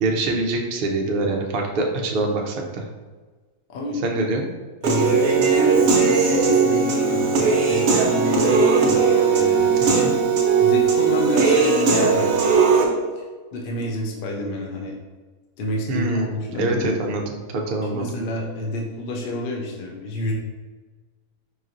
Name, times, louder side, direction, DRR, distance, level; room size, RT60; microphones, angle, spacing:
voice 1, 0.0-2.8 4.0-4.5 9.8-10.1 15.9-16.3 16.6-18.2, right 2 dB, 85° right, 1 dB, 0.4 m, -24 dB
voice 2, 3.7-4.0 4.8-10.2 10.6-12.3 13.2-13.3 13.5-15.0 15.6-16.9 17.9-20.3, left 1 dB, 65° left, -1 dB, 0.5 m, -28 dB
Human voice / Piano, 4.8-12.8, right 5 dB, 70° right, 1.1 m, -18 dB
4.8 x 3.0 x 2.5 m, 1.4 s
omnidirectional pair, 1.6 m